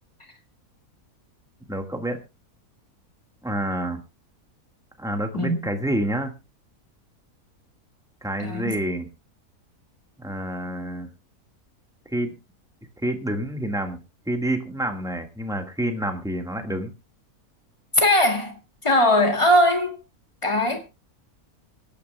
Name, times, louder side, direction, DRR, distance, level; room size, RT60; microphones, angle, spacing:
voice 1, 1.7-2.2 3.4-4.0 5.0-6.3 8.2-9.1 10.2-11.1 12.1-12.3 13.0-14.0 14.2-16.9, right 1 dB, ahead, 1.5 m, -28 dB
voice 2, 8.4-8.8 17.9-20.0 20.4-20.8, left 1 dB, 20° left, 2.2 m, -20 dB
25.5 x 9.9 x 2.2 m
omnidirectional pair, 1.6 m